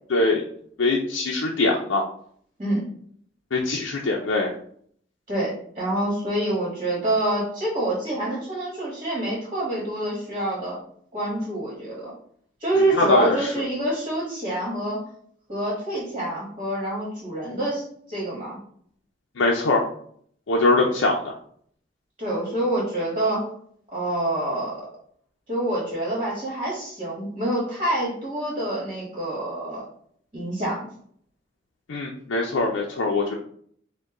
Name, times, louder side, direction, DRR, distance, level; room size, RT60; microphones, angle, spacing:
voice 1, 0.1-0.4 0.8-2.0 3.5-4.5 12.9-13.5 19.4-19.9 20.5-21.3 31.9-33.3, left 2 dB, 90° left, -1 dB, 0.5 m, -22 dB
voice 2, 5.3-10.8 11.1-12.1 12.6-15.0 15.5-18.6 22.2-23.5 23.9-24.8 25.5-29.8 30.3-30.8, right 1 dB, 30° right, -6 dB, 1.4 m, -26 dB
5.2 x 2.2 x 3.7 m, 0.63 s
head